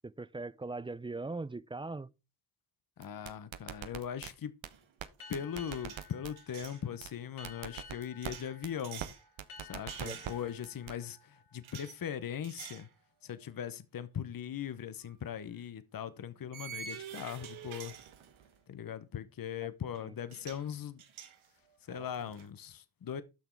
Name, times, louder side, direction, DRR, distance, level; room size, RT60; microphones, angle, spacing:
voice 1, 0.0-2.1 10.0-10.2 19.6-19.7 20.0-20.1, right 3 dB, 10° right, 0.3 m, -40 dB
voice 2, 3.0-4.5 5.3-9.1 9.6-12.9 13.2-17.9 18.7-21.0 21.9-23.2, left 9 dB, 45° left, 0.8 m, -40 dB
sound 1, 3.0-4.3 4.6-4.7 5.0-5.1 5.3-6.3 6.6-6.7 7.0-7.1 7.4-8.3 8.6-8.7 9.0-9.1 9.4-10.3 10.6-10.9, right 11 dB, 75° right, 0.9 m, -41 dB
sound 2, 4.7-4.9 5.2-6.8 8.2-9.2 9.9-10.8 11.6-12.0 12.4-12.9 13.3-13.5 15.0-15.2 16.5-18.6 19.9-20.0 20.3-20.7 21.0-22.5, right 8 dB, 90° right, 1.3 m, -48 dB
Boat Water vehicle, 5.2-12.3, left 5 dB, 90° left, 1.9 m, -54 dB
7.1 x 6.0 x 4.5 m
cardioid pair, 60°, 47 cm